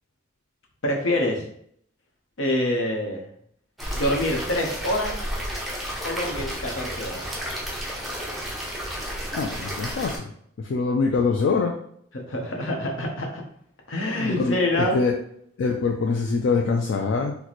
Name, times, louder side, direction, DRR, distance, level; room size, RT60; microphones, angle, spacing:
voice 1, 0.8-1.4 2.4-3.3 3.9-5.2 6.0-7.3 12.1-13.4 13.9-15.0, left 1 dB, 80° left, 1 dB, 0.8 m, -26 dB
sound 1, 3.8-10.2, equal, ahead, 0.5 m, -32 dB
voice 2, 9.3-10.2 10.7-11.7 14.2-14.6 14.9-15.1 15.6-17.4, left 4 dB, 65° left, 1 dB, 0.3 m, -23 dB
4.0 x 2.1 x 3.0 m, 0.67 s
head